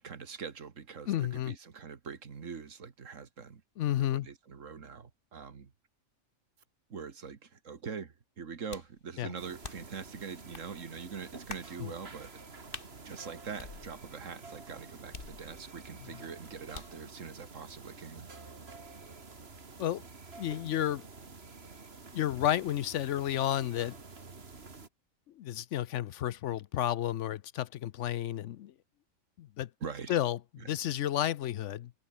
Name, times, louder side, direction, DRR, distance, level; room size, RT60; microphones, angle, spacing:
voice 1, 0.0-3.6 4.1-5.7 6.9-12.3 13.0-18.3 29.8-30.1 30.6-30.8, right 6 dB, 70° right, 2.0 m, -43 dB
voice 2, 1.1-1.5 3.8-4.3 9.2-9.3 11.8-11.9 19.8-20.0 20.4-21.0 22.1-24.0 25.4-28.7 29.4-29.7 30.1-31.9, left 12 dB, 70° left, 0.9 m, -31 dB
sound 1, 8.7-9.0 9.6-10.0 10.5-10.7 11.5-11.8 12.7-12.9 13.6-14.2 15.1-15.8 16.7-17.1, left 4 dB, 40° left, 1.8 m, -46 dB
sound 2, 9.4-24.9, right 4 dB, 50° right, 2.4 m, -49 dB
open air
omnidirectional pair, 1.4 m